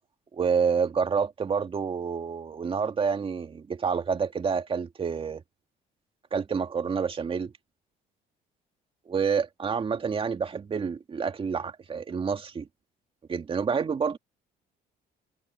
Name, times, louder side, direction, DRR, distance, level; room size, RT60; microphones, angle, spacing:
voice 1, 0.3-5.4 6.3-7.5 9.1-12.7 13.3-14.2, right 6 dB, 30° right, 2.2 m, -28 dB
cardioid pair, 110°, 17 cm